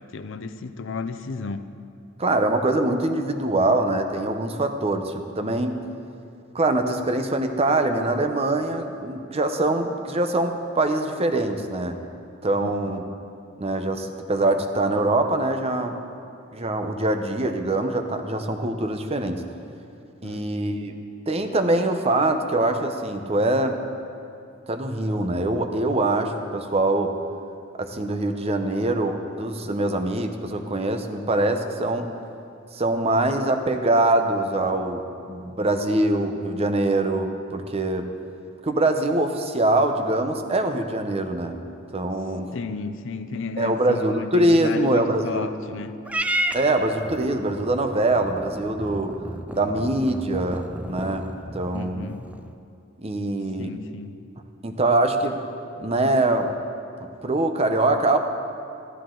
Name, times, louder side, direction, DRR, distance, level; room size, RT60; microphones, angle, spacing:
voice 1, 0.0-1.7 12.6-13.0 20.2-20.4 42.5-45.9 51.7-52.3 53.6-54.2, left 4 dB, 65° left, 11 dB, 0.5 m, -33 dB
voice 2, 2.2-5.7 6.5-12.0 12.4-13.1 13.6-16.0 16.5-19.4 20.2-20.9 21.3-23.8 24.7-27.2 27.8-32.1 32.7-38.1 38.6-41.5 41.9-42.5 43.6-45.5 46.5-49.2 49.5-52.1 53.0-53.8 54.6-55.4 55.8-56.5 57.2-58.2, right 2 dB, 30° right, 6 dB, 0.7 m, -23 dB
Purr / Meow, 46.0-52.5, right 1 dB, 5° right, 0.3 m, -32 dB
13.5 x 13.0 x 3.8 m, 2.5 s
head